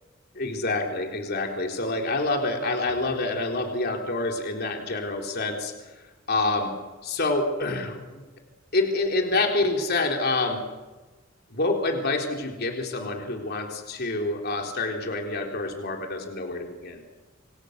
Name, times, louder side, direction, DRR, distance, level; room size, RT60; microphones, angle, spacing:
voice 1, 0.3-6.0 6.3-6.7 7.0-8.3 8.7-10.6 11.5-17.0, left 2 dB, 50° left, 2 dB, 3.7 m, -27 dB
27.0 x 26.5 x 6.7 m, 1.2 s
head